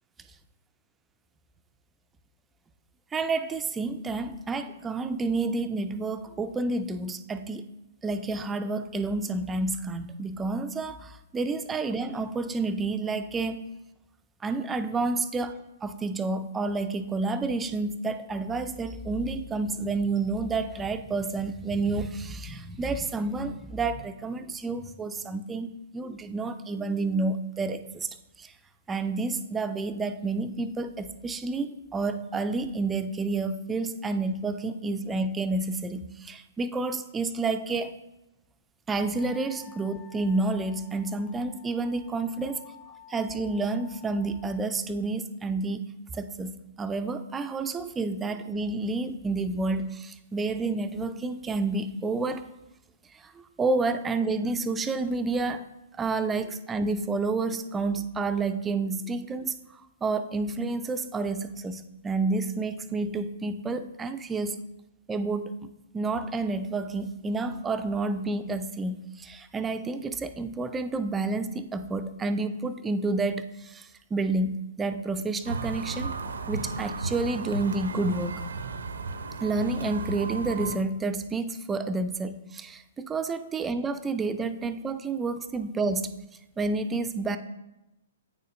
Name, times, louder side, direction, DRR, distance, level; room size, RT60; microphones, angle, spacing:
voice 1, 3.1-7.7 8.0-13.6 14.4-28.1 28.4-28.5 28.9-37.9 38.9-42.6 43.1-45.9 46.1-52.4 53.1-55.7 56.0-64.6 65.1-65.5 65.9-76.1 76.5-78.4 79.4-86.1 86.6-87.4, right 3 dB, 15° right, 9 dB, 0.4 m, -29 dB
Wind instrument woodwind instrument, 39.1-44.6, left 8 dB, 55° left, 1.0 m, -52 dB
sound 1, 75.5-80.8, right 3 dB, 70° right, 0.5 m, -34 dB
8.7 x 6.6 x 2.5 m, 0.96 s
figure-of-eight pair, 115°, 0 cm